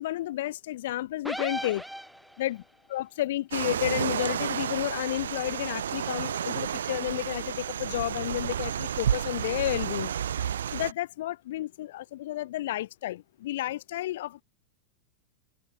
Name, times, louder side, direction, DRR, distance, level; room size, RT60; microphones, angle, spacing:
voice 1, 0.0-1.8 2.4-2.6 2.9-10.1 10.7-14.4, left 15 dB, 55° left, 0.7 m, -31 dB
sound 1, 1.2-2.6, equal, ahead, 1.1 m, -36 dB
sound 2, 3.5-10.9, right 9 dB, 65° right, 2.2 m, -31 dB
open air
figure-of-eight pair, 90°, 0 cm